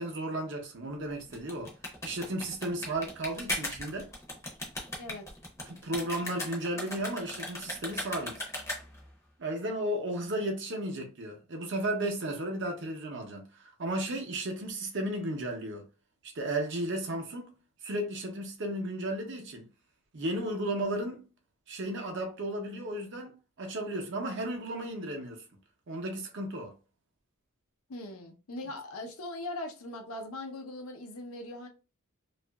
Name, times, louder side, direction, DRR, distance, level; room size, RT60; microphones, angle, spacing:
voice 1, 0.0-1.7 2.0-4.1 5.6-8.5 9.4-15.9 16.2-17.6 17.8-19.7 20.1-21.3 21.7-23.3 23.6-25.4 25.9-26.7, right 1 dB, 55° right, 0.6 m, -34 dB
sound 1, 1.2-9.1, left 1 dB, 15° left, 0.6 m, -38 dB
voice 2, 27.9-31.7, left 2 dB, 75° left, 0.6 m, -40 dB
2.7 x 2.4 x 2.2 m
head